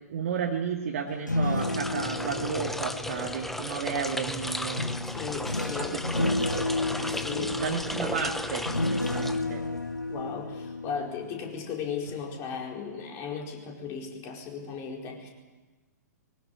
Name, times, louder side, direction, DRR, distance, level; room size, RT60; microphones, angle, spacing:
voice 1, 0.1-4.9 5.8-6.6 7.0-9.6, right 6 dB, 50° right, 0 dB, 2.4 m, -33 dB
sound 1, 1.1-4.0 4.8-11.7 12.1-12.4, left 2 dB, 90° left, 0.9 m, -32 dB
sound 2, 1.5-9.9, left 1 dB, ahead, 0.8 m, -35 dB
voice 2, 5.1-6.0 6.9-7.6 10.1-15.3, left 6 dB, 30° left, 1 dB, 4.6 m, -36 dB
21.5 x 18.5 x 9.8 m, 1.2 s
figure-of-eight pair, 115°, 10 cm